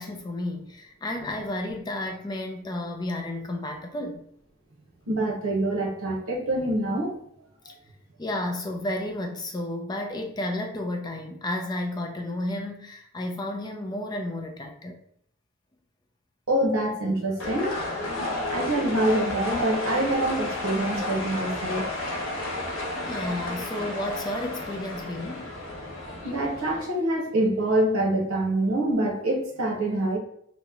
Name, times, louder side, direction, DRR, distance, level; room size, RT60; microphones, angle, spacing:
voice 1, 0.0-4.2 7.6-7.7 8.2-15.0 23.0-25.5, left 1 dB, 20° left, 3 dB, 0.3 m, -32 dB
voice 2, 5.1-7.1 16.5-17.8 18.5-21.9 26.2-30.2, right 1 dB, 85° right, 1 dB, 0.8 m, -25 dB
sound 1, 17.4-26.8, left 2 dB, 75° left, 1.0 m, -32 dB
2.9 x 2.1 x 3.5 m, 0.70 s
head